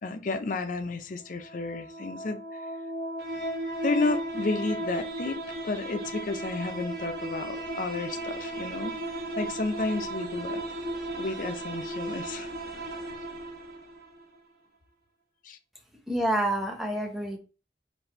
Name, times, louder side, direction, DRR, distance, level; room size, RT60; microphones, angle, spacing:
voice 1, 0.0-2.6 3.8-8.9 9.4-10.6 11.2-12.5 15.4-15.6, left 3 dB, 50° left, 0.5 m, -32 dB
sound 1, 1.2-14.2, right 1 dB, 60° right, 1.0 m, -35 dB
voice 2, 16.1-17.4, right 1 dB, ahead, 0.7 m, -28 dB
4.0 x 2.6 x 4.3 m
head